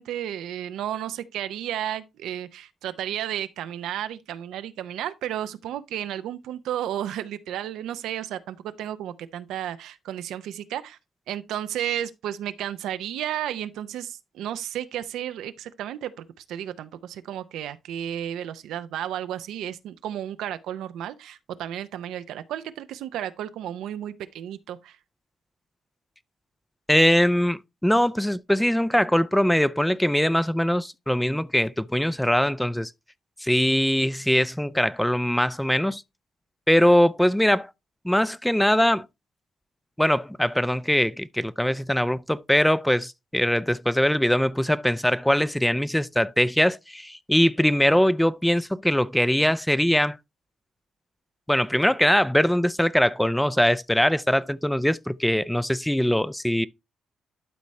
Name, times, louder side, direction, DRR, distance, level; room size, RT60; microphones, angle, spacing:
voice 1, 0.0-11.0 11.3-25.0, right 11 dB, 85° right, 0.6 m, -33 dB
voice 2, 26.9-32.9 33.4-36.0 36.7-37.7 38.0-39.1 40.0-50.2 51.5-56.7, equal, 5° left, 0.4 m, -22 dB
12.0 x 4.2 x 3.2 m
cardioid pair, 80°, 0 cm